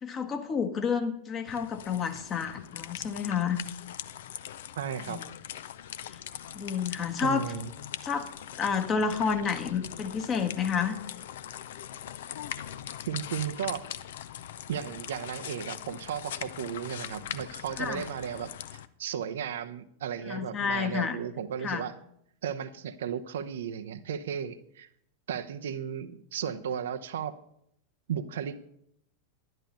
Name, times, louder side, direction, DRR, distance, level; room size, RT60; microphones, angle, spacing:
voice 1, 0.0-3.6 5.1-5.2 6.1-6.2 6.5-7.5 8.0-11.0 17.8-18.0 20.3-21.2 21.6-21.9, left 6 dB, 25° left, 6 dB, 1.3 m, -30 dB
sound 1, 1.5-18.9, left 10 dB, 60° left, 0.6 m, -41 dB
voice 2, 4.8-5.2 7.2-7.7 13.1-13.8 14.7-21.9 22.4-24.9 25.3-27.3 28.1-28.6, right 8 dB, 60° right, 9 dB, 0.7 m, -35 dB
11.0 x 11.0 x 5.4 m, 0.72 s
figure-of-eight pair, 90°, 0 cm